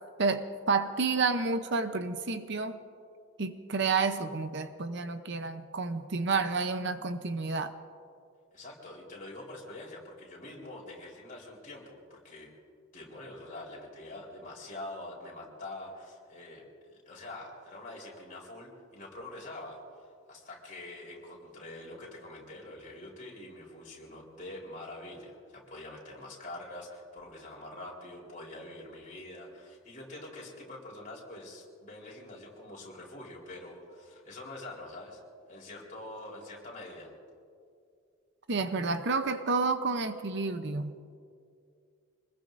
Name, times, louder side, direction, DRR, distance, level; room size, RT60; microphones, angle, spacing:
voice 1, 0.2-2.8 3.4-7.7 38.5-41.0, right 4 dB, 55° right, 9 dB, 0.8 m, -30 dB
voice 2, 8.5-12.5 12.9-35.2 35.5-37.1, left 2 dB, 40° left, -3 dB, 4.0 m, -45 dB
26.0 x 20.5 x 2.6 m, 2.3 s
head